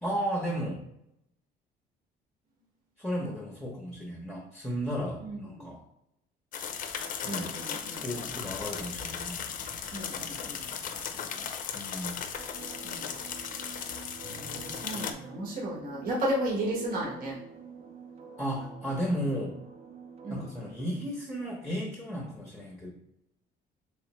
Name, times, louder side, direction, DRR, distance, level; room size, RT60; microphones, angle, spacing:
voice 1, 0.0-0.8 3.0-5.8 7.2-7.5 8.0-9.4 11.7-12.2 18.4-19.6 20.3-22.9, equal, ahead, -2 dB, 0.8 m, -34 dB
voice 2, 5.2-5.7 7.2-8.3 9.9-10.7 10.9-11.5 12.8-13.1 14.3-17.4 20.2-20.5, right 1 dB, 60° right, -3 dB, 1.2 m, -34 dB
sound 1, 6.5-15.1, left 7 dB, 50° left, 0.5 m, -37 dB
sound 2, 12.4-20.7, right 5 dB, 35° right, 0.5 m, -48 dB
3.4 x 3.1 x 3.0 m, 0.81 s
cardioid pair, 110°, 17 cm